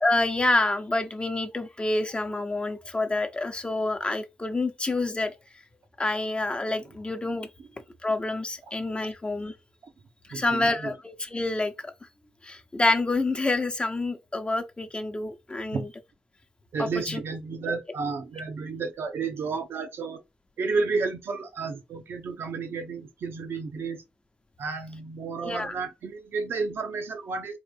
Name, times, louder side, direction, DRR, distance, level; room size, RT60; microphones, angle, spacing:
voice 1, 0.0-5.3 6.0-7.5 8.0-9.5 10.3-11.9 12.4-15.9 16.8-17.2 25.4-25.7, left 2 dB, 25° left, 0.8 m, -27 dB
voice 2, 10.3-10.9 15.7-15.9 16.7-20.2 20.6-24.0 24.6-27.6, right 4 dB, 70° right, 0.7 m, -32 dB
3.9 x 2.6 x 3.4 m
supercardioid pair, 45°, 4 cm